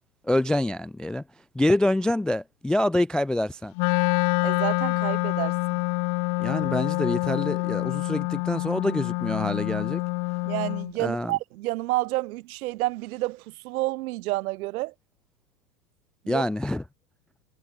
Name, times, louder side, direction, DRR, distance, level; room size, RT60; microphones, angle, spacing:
voice 1, 0.2-1.2 1.5-3.7 6.4-10.0 11.0-11.3 16.3-16.8, left 1 dB, ahead, 0.3 m, -26 dB
Wind instrument woodwind instrument, 3.8-10.9, left 34 dB, 45° left, 1.7 m, -26 dB
voice 2, 4.4-5.8 10.4-14.9 16.2-16.5, right 19 dB, 60° right, 2.9 m, -29 dB
hypercardioid pair, 130°, 48 cm